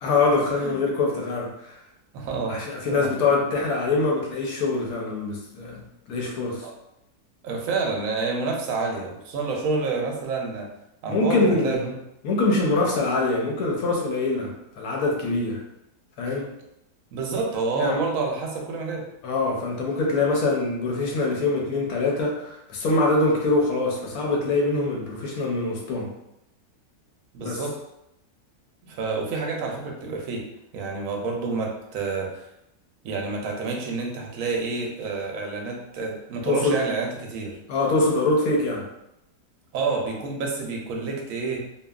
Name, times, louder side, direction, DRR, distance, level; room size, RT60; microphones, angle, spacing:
voice 1, 0.0-1.7 2.5-5.8 6.1-6.6 11.1-11.8 12.2-15.6 16.2-16.5 17.7-18.0 19.2-26.1 27.4-27.6 36.4-36.9 37.7-38.8, left 3 dB, 70° left, -1 dB, 1.0 m, -24 dB
voice 2, 2.1-2.6 2.9-3.1 6.6-6.7 7.4-10.7 11.0-11.9 12.8-12.9 17.1-19.0 27.3-27.8 28.8-30.4 30.7-32.5 33.0-37.6 39.7-41.7, right 4 dB, 65° right, 0 dB, 0.9 m, -28 dB
2.7 x 2.3 x 2.3 m, 0.83 s
omnidirectional pair, 1.8 m